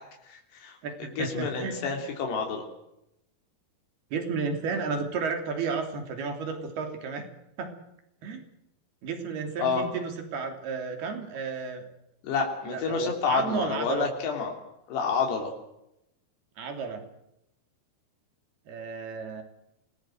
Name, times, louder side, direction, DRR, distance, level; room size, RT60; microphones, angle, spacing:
voice 1, 0.3-0.8 1.2-2.6 9.6-9.8 12.2-14.5 14.9-15.5, left 5 dB, 90° left, 2 dB, 5.3 m, -29 dB
voice 2, 0.8-1.9 4.1-7.3 7.6-7.7 8.2-8.4 9.0-11.9 12.7-14.1 16.6-17.0 18.7-19.4, right 5 dB, 70° right, 5 dB, 5.1 m, -32 dB
26.5 x 19.5 x 7.8 m, 0.83 s
omnidirectional pair, 4.6 m